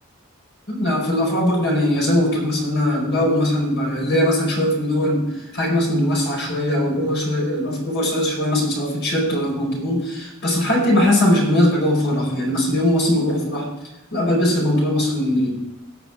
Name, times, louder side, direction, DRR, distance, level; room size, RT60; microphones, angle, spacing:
voice 1, 0.7-13.7 14.1-15.5, left 1 dB, 60° left, -1 dB, 4.9 m, -20 dB
18.0 x 6.2 x 4.7 m, 0.96 s
head